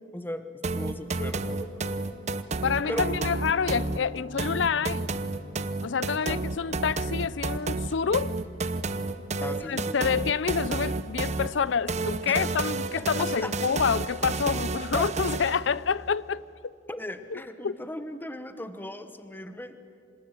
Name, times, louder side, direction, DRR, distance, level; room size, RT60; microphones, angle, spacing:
voice 1, 0.0-2.1 2.9-3.0 6.3-6.4 9.4-9.9 12.3-12.5 13.4-13.5 14.9-15.1 16.9-19.7, left 1 dB, 10° left, 1.0 m, -37 dB
sound 1, 0.6-15.7, right 3 dB, 40° right, 0.9 m, -31 dB
voice 2, 2.6-5.1 5.8-8.4 9.7-16.4 17.3-17.8, left 6 dB, 80° left, 0.5 m, -28 dB
Acoustic guitar, 2.8-8.0, left 2 dB, 70° right, 2.1 m, -44 dB
26.5 x 20.0 x 9.1 m
head